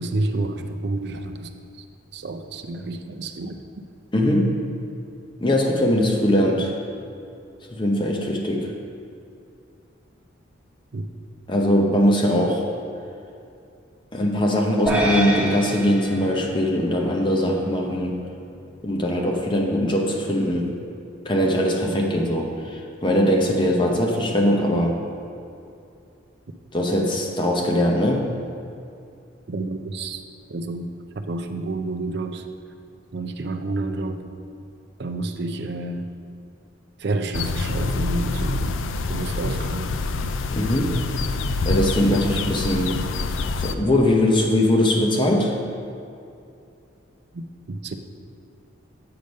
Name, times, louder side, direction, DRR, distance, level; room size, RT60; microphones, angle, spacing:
voice 1, 0.0-1.8 2.1-3.6 10.9-11.1 29.5-30.2 30.5-30.9 31.2-32.4 33.1-34.2 35.0-36.1 37.0-38.8 39.1-40.0 47.3-48.0, right 2 dB, 55° right, 6 dB, 0.5 m, -29 dB
voice 2, 4.1-4.6 5.4-6.7 7.7-8.7 11.5-12.7 14.1-18.2 18.8-20.7 21.3-25.0 26.7-28.2 40.5-40.9 41.7-43.0 43.6-45.6, left 1 dB, 25° left, 0 dB, 0.8 m, -21 dB
sound 1, 14.9-17.3, right 1 dB, 5° right, 1.2 m, -27 dB
sound 2, 37.3-43.7, left 3 dB, 70° left, 0.4 m, -26 dB
7.9 x 5.1 x 5.3 m, 2.6 s
head